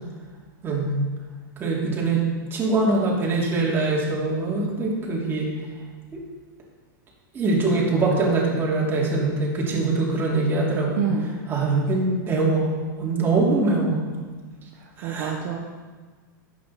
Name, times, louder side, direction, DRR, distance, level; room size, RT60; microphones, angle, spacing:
voice 1, 0.6-1.0 1.6-2.2 2.5-5.5 6.1-6.2 7.3-10.9 11.5-12.7 13.0-14.0 15.0-15.3, right 3 dB, 20° right, -4 dB, 2.8 m, -23 dB
voice 2, 10.9-11.3 14.7-15.6, right 7 dB, 50° right, 0 dB, 1.2 m, -27 dB
11.5 x 8.6 x 4.2 m, 1.4 s
supercardioid pair, 140°, 11 cm